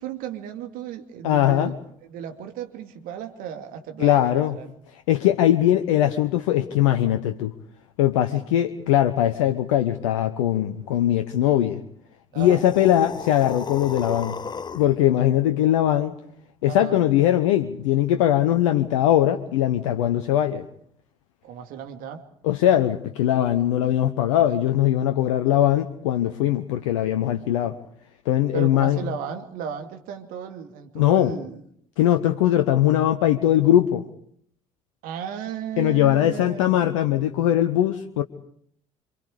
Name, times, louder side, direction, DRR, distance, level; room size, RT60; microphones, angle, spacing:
voice 1, 0.0-1.7 2.0-4.7 12.3-12.6 16.6-17.0 21.4-22.2 28.5-31.6 35.0-36.8, right 8 dB, 55° right, 2.5 m, -34 dB
voice 2, 1.2-1.7 4.0-4.6 5.1-7.5 8.0-11.8 12.4-14.4 14.7-16.1 16.6-20.6 22.4-27.8 28.3-29.0 31.0-31.3 32.0-34.0 35.8-38.2, left 12 dB, 65° left, 1.0 m, -20 dB
sound 1, 12.3-15.0, left 6 dB, 25° left, 0.9 m, -34 dB
27.0 x 25.5 x 5.0 m
figure-of-eight pair, 50°, 17 cm